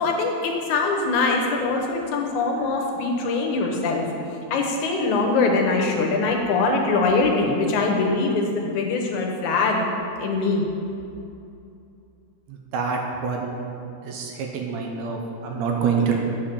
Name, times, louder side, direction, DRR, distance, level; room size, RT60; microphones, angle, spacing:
voice 1, 0.0-4.1 4.5-9.9 10.2-10.6, left 3 dB, 75° left, 1 dB, 2.4 m, -22 dB
voice 2, 12.5-13.6 14.0-16.2, right 5 dB, 70° right, 1 dB, 2.0 m, -26 dB
8.8 x 5.6 x 6.9 m, 2.6 s
omnidirectional pair, 3.5 m